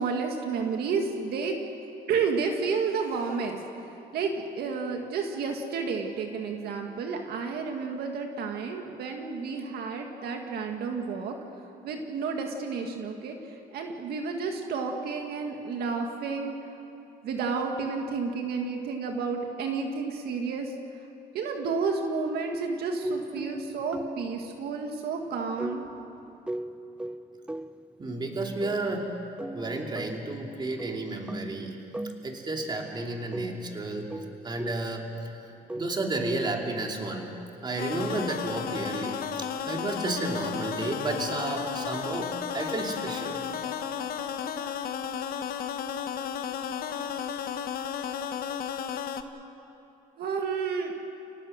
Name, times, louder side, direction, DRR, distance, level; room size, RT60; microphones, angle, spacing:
voice 1, 0.0-1.6 2.1-3.6 4.1-11.4 11.8-16.5 17.2-20.7 21.3-25.8 50.2-50.9, right 5 dB, 70° right, 3 dB, 2.0 m, -31 dB
sound 1, 23.0-24.5 25.6-27.8 28.6-29.0 29.4-30.3 30.8-32.6 33.0-34.9 35.7-36.1, right 1 dB, 5° right, 0.5 m, -38 dB
voice 2, 28.0-29.1 29.5-31.8 32.2-34.1 34.4-35.4 35.8-37.3 37.6-43.4, right 2 dB, 25° right, 1 dB, 2.9 m, -32 dB
sound 2, 37.8-49.2, left 8 dB, 60° left, 1.3 m, -33 dB
30.0 x 18.0 x 6.6 m, 2.9 s
cardioid pair, 110°, 17 cm